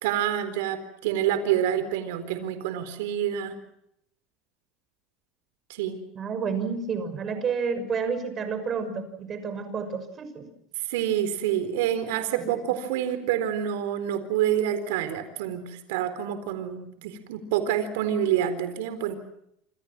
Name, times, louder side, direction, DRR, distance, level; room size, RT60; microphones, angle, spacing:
voice 1, 0.0-3.5 5.7-6.0 10.9-19.2, right 10 dB, 85° right, 10 dB, 4.1 m, -27 dB
voice 2, 6.1-10.5 12.4-12.5, right 5 dB, 30° right, 10 dB, 6.0 m, -30 dB
28.0 x 27.0 x 6.1 m, 0.78 s
supercardioid pair, 145°, 0 cm